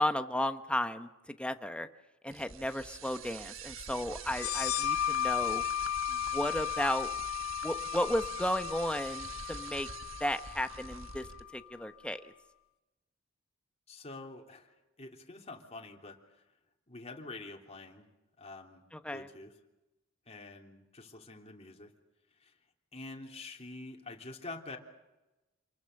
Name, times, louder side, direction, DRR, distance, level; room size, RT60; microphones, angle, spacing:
voice 1, 0.0-1.9 2.2-5.6 6.1-7.1 7.6-9.9 10.2-11.3 11.5-12.2 18.9-19.3, left 1 dB, 5° left, 8 dB, 1.1 m, -34 dB
sound 1, 2.3-11.4, right 7 dB, 70° right, 1.5 m, -45 dB
sound 2, 4.3-11.6, left 10 dB, 85° left, 0.7 m, -35 dB
voice 2, 13.9-16.2 16.9-18.1 18.4-18.8 19.1-19.5 20.3-21.9 22.4-22.5 22.9-24.8, left 2 dB, 30° left, 2 dB, 3.3 m, -46 dB
28.0 x 21.5 x 6.7 m, 1.0 s
head